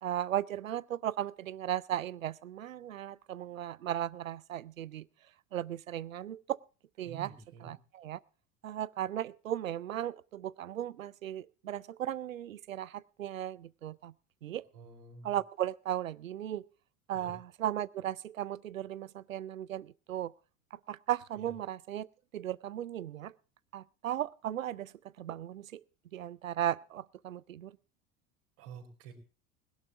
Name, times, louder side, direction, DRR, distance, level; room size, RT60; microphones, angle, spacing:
voice 1, 0.0-5.1 5.5-6.6 7.0-7.3 7.6-8.2 8.6-14.1 14.4-14.6 15.2-16.7 17.1-20.3 20.7-22.1 22.3-23.4 23.7-25.8 26.1-27.8, right 11 dB, 80° right, 0.6 m, -36 dB
voice 2, 7.0-7.7 14.7-15.3 17.1-17.3 21.3-21.5 28.6-29.1, right 6 dB, 60° right, 5.2 m, -49 dB
21.0 x 12.0 x 3.6 m
figure-of-eight pair, 70°, 39 cm